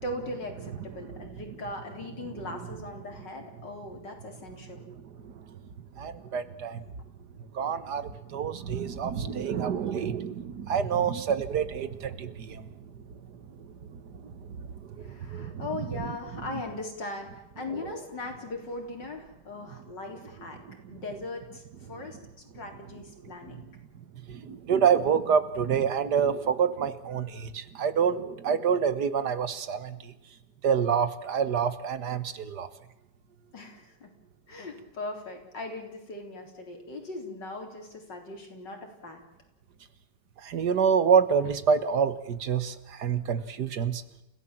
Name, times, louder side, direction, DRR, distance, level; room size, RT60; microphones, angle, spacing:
voice 1, 0.0-4.9 15.0-20.6 20.9-21.6 21.9-23.7 33.5-34.1 34.5-39.2, left 2 dB, 90° left, 2 dB, 4.5 m, -39 dB
voice 2, 1.0-1.3 2.5-2.6 4.9-5.4 6.0-6.8 7.5-12.7 13.5-16.6 17.7-17.9 20.7-21.0 22.0-22.2 23.2-23.7 24.3-30.1 30.6-32.7 40.4-44.0, right 7 dB, 70° right, 12 dB, 1.9 m, -28 dB
29.5 x 16.0 x 7.5 m, 0.95 s
omnidirectional pair, 1.9 m